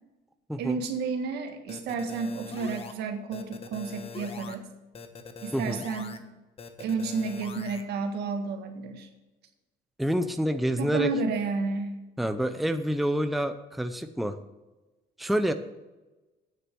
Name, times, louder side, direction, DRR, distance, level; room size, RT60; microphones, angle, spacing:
voice 1, 0.6-4.7 5.4-6.3 6.8-9.1 10.8-11.9, right 4 dB, 75° right, 5 dB, 1.7 m, -31 dB
sound 1, 1.7-2.9 3.3-4.6 4.9-6.2 6.6-7.8, left 5 dB, 35° left, 1.1 m, -42 dB
voice 2, 5.5-5.8 10.0-11.1 12.2-14.4 15.2-15.5, equal, ahead, 8 dB, 0.7 m, -27 dB
9.2 x 6.7 x 7.6 m, 1.1 s
cardioid pair, 110°, 17 cm